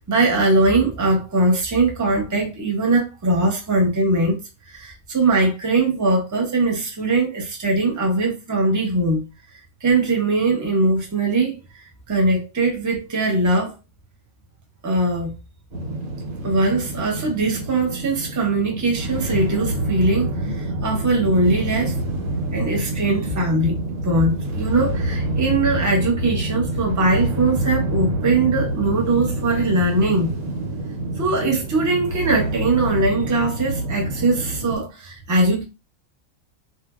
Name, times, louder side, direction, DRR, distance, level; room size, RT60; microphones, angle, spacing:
voice 1, 0.0-4.4 4.7-9.2 9.8-13.7 14.8-15.3 16.4-22.0 22.5-23.8 24.0-30.3 31.2-35.6, right 2 dB, 20° right, 0.5 m, -21 dB
sound 1, 15.7-34.8, right 1 dB, 85° right, 1.3 m, -27 dB
2.8 x 2.5 x 2.2 m
omnidirectional pair, 1.4 m